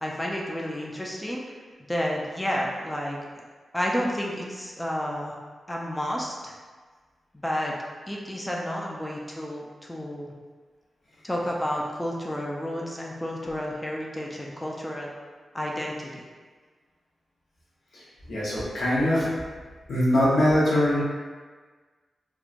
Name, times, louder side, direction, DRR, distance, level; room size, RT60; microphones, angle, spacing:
voice 1, 0.0-1.6 1.9-3.2 3.7-5.3 5.7-6.5 7.3-7.7 8.1-10.3 11.2-15.1 15.5-16.2, equal, 10° left, -2 dB, 0.3 m, -31 dB
voice 2, 18.3-19.3 19.9-21.0, left 1 dB, 80° left, -8 dB, 0.8 m, -22 dB
2.9 x 2.1 x 2.4 m, 1.5 s
cardioid pair, 80°, 0 cm